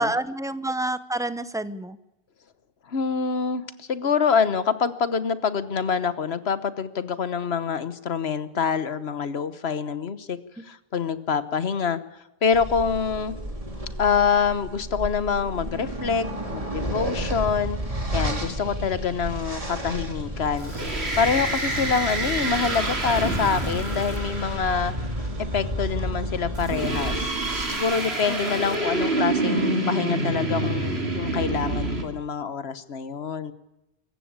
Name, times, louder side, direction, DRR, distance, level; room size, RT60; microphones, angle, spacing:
voice 1, 0.0-2.0 28.2-28.5, right 2 dB, 5° right, 14 dB, 0.8 m, -28 dB
voice 2, 2.9-10.4 10.7-12.0 12.4-13.3 14.0-17.8 18.1-20.7 21.2-24.9 25.4-27.3 27.7-33.5, left 6 dB, 85° left, 14 dB, 1.4 m, -26 dB
sound 1, 12.5-27.8, equal, 35° right, 3.4 m, -31 dB
sound 2, 20.6-25.1 26.6-32.0, right 2 dB, 90° right, 3.1 m, -27 dB
25.5 x 14.5 x 8.8 m, 0.91 s
omnidirectional pair, 1.0 m